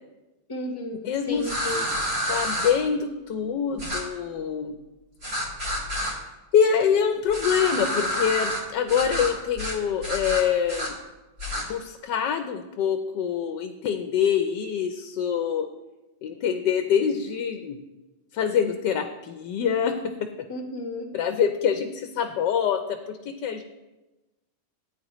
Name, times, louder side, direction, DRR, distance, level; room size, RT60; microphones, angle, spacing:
voice 1, 0.5-1.9 20.5-21.1, left 2 dB, 15° left, 2 dB, 1.2 m, -33 dB
voice 2, 1.0-1.5 2.3-4.7 6.5-10.9 11.7-15.7 16.2-17.8 18.3-20.0 21.1-22.8 23.1-23.6, left 7 dB, 80° left, 6 dB, 1.3 m, -25 dB
sound 1, 1.4-2.7 3.8-4.0 5.2-6.1 7.3-8.6 8.9-9.3 9.6-9.8 10.0-10.9 11.4-11.6, equal, 70° right, 4.6 m, -28 dB
14.0 x 9.1 x 3.0 m, 1.1 s
omnidirectional pair, 1.9 m